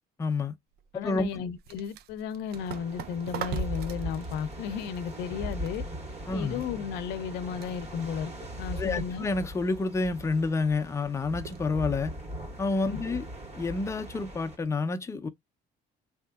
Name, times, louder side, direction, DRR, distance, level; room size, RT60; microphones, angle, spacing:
voice 1, 0.2-0.5 0.9-1.3 6.3-6.6 8.7-12.2 12.6-13.3 13.5-15.3, left 3 dB, 15° left, 0.5 m, -29 dB
sound 1, 0.7-14.7, right 8 dB, 70° right, 0.5 m, -46 dB
voice 2, 0.9-5.8 6.3-8.3 8.6-9.3 12.9-13.2, left 7 dB, 85° left, 0.5 m, -34 dB
sound 2, 2.5-14.6, equal, 40° right, 1.6 m, -39 dB
3.5 x 2.8 x 2.3 m
cardioid pair, 110°, 17 cm